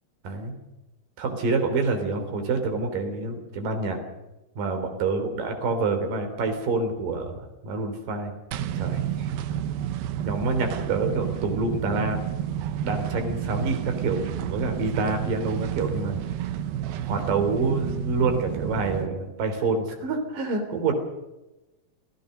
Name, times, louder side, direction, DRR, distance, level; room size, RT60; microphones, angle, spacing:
voice 1, 0.2-0.6 1.2-4.0 4.6-8.3 8.7-9.3 10.2-12.2 12.8-16.5 17.0-20.9, right 3 dB, 65° right, 5 dB, 5.0 m, -27 dB
sound 1, 8.5-19.1, right 10 dB, 80° right, 2.9 m, -30 dB
27.5 x 16.0 x 6.6 m, 1.0 s
omnidirectional pair, 4.3 m